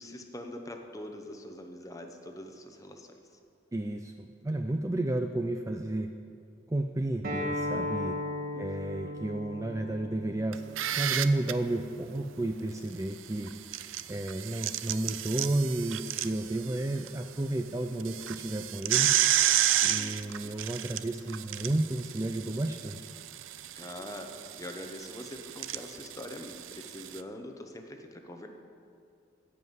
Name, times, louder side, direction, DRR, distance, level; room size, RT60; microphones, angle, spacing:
voice 1, 0.0-3.1 8.5-8.7 8.9-9.2 20.0-20.6 23.7-24.3 24.6-28.5, left 1 dB, 15° left, 4 dB, 0.9 m, -44 dB
voice 2, 3.7-6.1 6.7-8.2 8.6-10.6 11.0-13.5 14.1-19.1 19.8-23.1, right 1 dB, 15° right, 5 dB, 0.3 m, -32 dB
Acoustic guitar, 7.2-12.4, left 1 dB, 45° right, 1.4 m, -37 dB
sound 1, 10.5-11.5 13.5-17.1 17.4-17.5 18.0-27.2, right 12 dB, 80° right, 0.5 m, -31 dB
14.5 x 5.5 x 7.9 m, 2.7 s
head